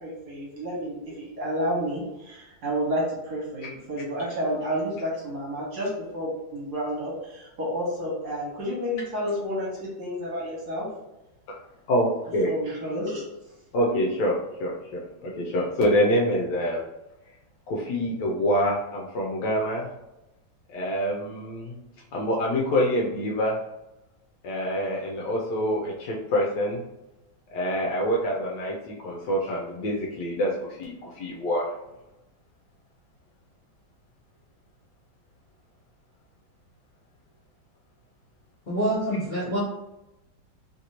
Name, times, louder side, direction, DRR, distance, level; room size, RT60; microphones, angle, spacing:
voice 1, 0.0-10.9 12.5-13.2, equal, 55° right, -5 dB, 1.5 m, -30 dB
voice 2, 11.9-12.5 13.7-16.8 17.7-19.9 20.7-21.7 22.1-23.6 24.4-26.8 27.5-31.7, equal, 70° left, -2 dB, 1.1 m, -26 dB
voice 3, 38.7-39.6, right 1 dB, 40° left, -10 dB, 0.6 m, -26 dB
3.2 x 2.6 x 2.9 m, 0.95 s
omnidirectional pair, 2.2 m